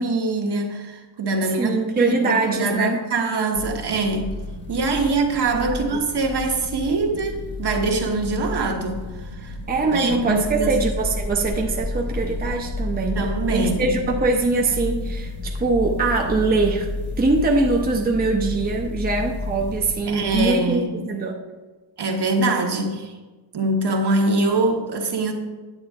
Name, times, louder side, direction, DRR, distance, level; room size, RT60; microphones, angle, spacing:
voice 1, 0.0-4.3 4.7-9.6 9.9-10.7 13.1-14.0 20.1-20.9 22.0-23.1 23.5-25.3, right 3 dB, 60° right, 2 dB, 1.2 m, -23 dB
voice 2, 1.6-3.0 5.7-6.0 9.7-13.2 13.5-16.9 17.2-21.4, right 3 dB, 20° right, 1 dB, 0.7 m, -22 dB
sound 1, 3.5-20.3, left 2 dB, 25° left, 1.1 m, -31 dB
9.7 x 8.4 x 3.5 m, 1.3 s
wide cardioid pair, 180°, 45 cm